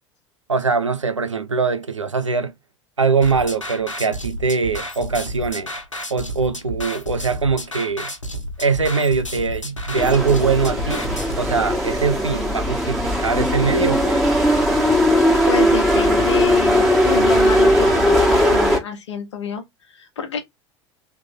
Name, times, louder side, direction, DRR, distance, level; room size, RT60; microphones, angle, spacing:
voice 1, 0.5-2.5 3.0-5.7 6.1-8.1 8.6-11.0 11.4-14.3, right 4 dB, 85° right, 0.6 m, -22 dB
sound 1, 3.2-11.4, equal, 90° left, 0.8 m, -31 dB
sound 2, 9.9-18.8, equal, ahead, 1.8 m, -18 dB
voice 2, 15.4-19.6 19.9-20.4, left 6 dB, 70° left, 1.1 m, -28 dB
3.6 x 3.1 x 3.7 m
figure-of-eight pair, 75°, 16 cm